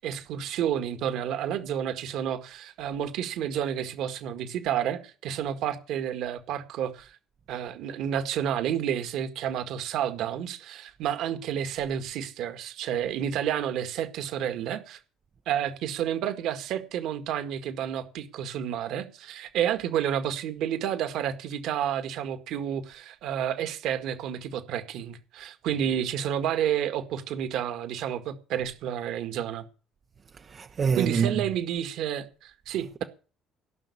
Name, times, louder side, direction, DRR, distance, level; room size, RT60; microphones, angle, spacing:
voice 1, 0.0-7.1 7.5-15.0 15.5-29.6 30.9-33.0, right 9 dB, 70° right, 1.8 m, -30 dB
voice 2, 30.4-31.5 32.7-33.0, right 6 dB, 45° right, 0.7 m, -28 dB
16.5 x 6.1 x 8.5 m
supercardioid pair, 75°, 0 cm